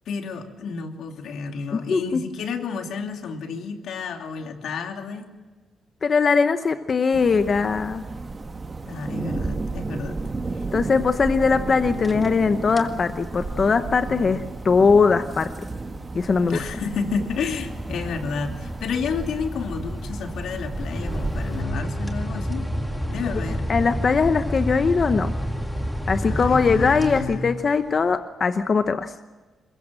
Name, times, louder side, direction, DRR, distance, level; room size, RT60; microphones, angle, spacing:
voice 1, 0.1-5.3 8.9-10.2 10.5-10.6 16.5-22.7 23.1-23.7 26.2-27.5, left 5 dB, 80° left, 5 dB, 2.8 m, -31 dB
voice 2, 1.7-2.2 6.0-8.0 10.7-15.5 16.1-16.6 23.7-25.3 26.1-29.1, left 5 dB, 40° left, 9 dB, 0.9 m, -20 dB
sound 1, 7.1-21.6, right 3 dB, 30° right, 1.5 m, -33 dB
sound 2, 11.9-12.4 12.7-13.0 13.5-27.8, equal, 5° left, 2.2 m, -31 dB
23.0 x 21.5 x 7.6 m, 1.3 s
cardioid pair, 110°, 0 cm